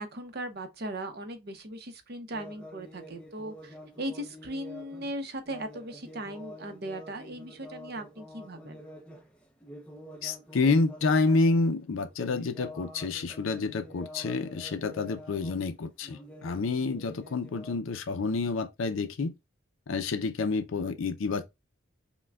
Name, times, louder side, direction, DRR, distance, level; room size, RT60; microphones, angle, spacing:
voice 1, 0.0-8.8, right 1 dB, 50° right, 0.7 m, -38 dB
sound 1, 2.3-11.7 12.0-15.7 16.0-17.8, equal, 5° left, 0.6 m, -48 dB
voice 2, 10.2-19.3 19.9-21.4, left 3 dB, 70° left, 0.5 m, -28 dB
5.7 x 2.2 x 2.3 m
head